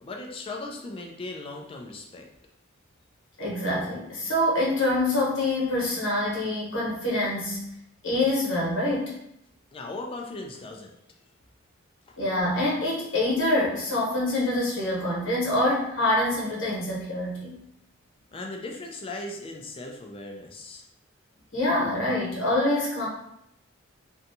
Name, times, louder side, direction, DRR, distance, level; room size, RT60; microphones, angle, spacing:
voice 1, 0.0-2.3 9.7-11.0 12.1-12.2 18.3-20.8, left 2 dB, 25° left, 1 dB, 0.3 m, -38 dB
voice 2, 3.4-7.6 8.0-9.1 12.2-17.6 21.5-23.1, left 1 dB, 60° left, -5 dB, 1.0 m, -25 dB
2.6 x 2.3 x 2.6 m, 0.76 s
head